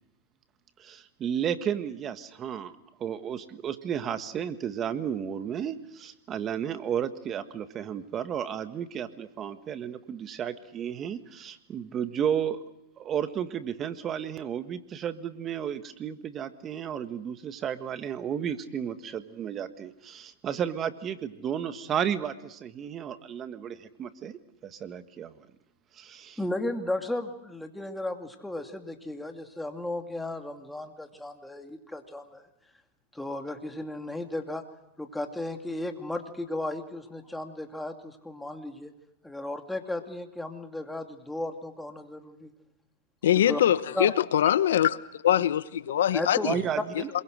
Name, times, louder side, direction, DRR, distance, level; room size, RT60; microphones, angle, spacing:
voice 1, 0.8-12.6 13.0-25.3 26.0-26.4 46.4-47.1, right 8 dB, 30° right, 10 dB, 1.6 m, -33 dB
voice 2, 26.4-32.4 33.1-34.6 35.0-38.9 39.2-42.5 43.3-43.6 43.9-44.1 46.1-46.5 46.8-46.9, left 1 dB, 5° left, 5 dB, 2.5 m, -34 dB
voice 3, 43.2-45.0 45.2-46.5, left 11 dB, 80° left, 16 dB, 1.0 m, -23 dB
27.0 x 22.5 x 6.4 m, 0.83 s
hypercardioid pair, 120°, 0 cm